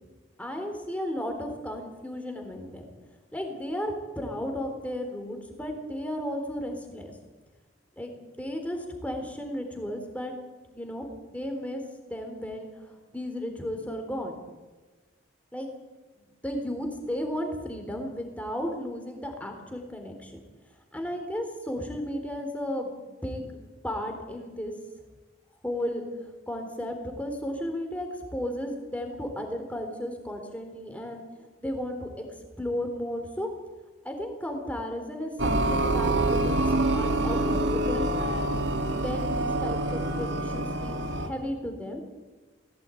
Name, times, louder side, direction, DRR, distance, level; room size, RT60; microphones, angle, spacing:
voice 1, 0.4-2.9 3.3-7.1 8.0-10.3 10.7-11.8 12.1-14.4 15.5-15.7 16.2-20.4 20.9-23.5 23.8-24.7 25.6-32.3 32.6-33.5 34.0-38.6 38.9-42.0, equal, 5° left, 3 dB, 3.7 m, -34 dB
sound 1, 35.4-41.3, right 1 dB, 65° right, 2.0 m, -26 dB
19.0 x 17.0 x 9.2 m, 1.2 s
head